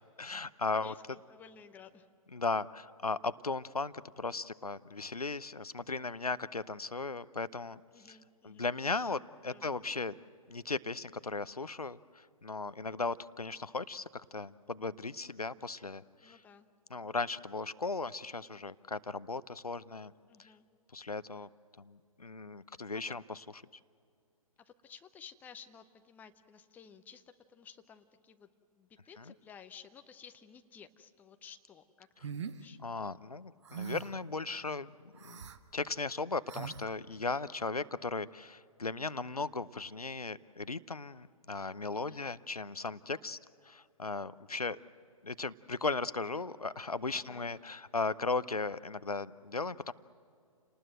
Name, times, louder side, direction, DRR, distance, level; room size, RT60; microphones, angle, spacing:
voice 1, 0.2-0.9 2.3-7.8 8.1-8.2 8.4-10.2 10.5-16.4 16.9-20.1 20.4-20.5 20.9-21.5 21.8-23.4 29.2-29.3 32.8-35.5 35.7-43.4 43.6-44.8 45.2-49.9, left 3 dB, 85° left, 16 dB, 0.7 m, -37 dB
voice 2, 0.8-2.1 7.9-8.7 9.5-9.7 16.2-16.7 20.3-20.7 22.9-23.1 24.6-27.2 27.5-32.1 32.3-32.8 42.0-42.2 43.1-43.3 47.1-47.5, left 7 dB, 10° left, 8 dB, 0.7 m, -55 dB
sound 1, 32.2-32.6 33.7-34.2 35.2-35.6 36.5-36.8, right 7 dB, 50° right, 1.1 m, -41 dB
29.0 x 19.5 x 7.8 m, 2.4 s
figure-of-eight pair, 125°, 19 cm